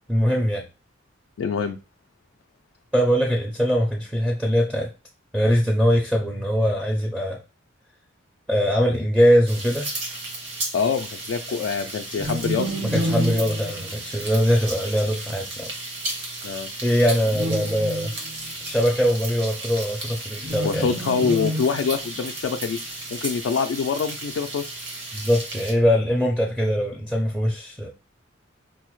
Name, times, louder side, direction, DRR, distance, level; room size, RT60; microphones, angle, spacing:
voice 1, 0.1-0.6 2.9-4.9 5.3-7.4 8.5-9.9 12.8-15.7 16.8-18.1 18.7-20.9 25.1-27.9, equal, 5° right, 0.4 m, -22 dB
voice 2, 1.4-1.8 10.7-12.8 16.4-16.7 20.6-22.8 23.1-24.8, left 6 dB, 70° left, 0.3 m, -25 dB
sound 1, 9.5-25.7, right 2 dB, 60° right, 1.2 m, -34 dB
sound 2, 12.1-14.5 17.2-18.5 20.4-22.3, equal, 35° right, 0.7 m, -29 dB
4.7 x 2.0 x 3.0 m
head